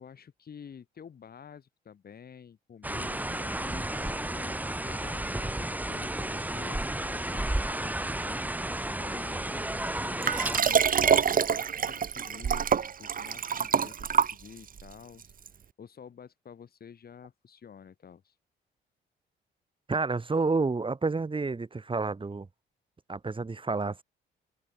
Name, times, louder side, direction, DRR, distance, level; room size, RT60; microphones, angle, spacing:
voice 1, 0.0-18.4, left 7 dB, 50° left, 7.8 m, -50 dB
sound 1, 2.8-10.6, right 1 dB, 10° right, 4.1 m, -32 dB
Liquid, 10.2-14.8 15.5-15.6, right 7 dB, 45° right, 1.7 m, -26 dB
voice 2, 19.9-22.5 23.1-24.0, right 3 dB, 25° right, 5.6 m, -29 dB
cardioid pair, 90°, 20 cm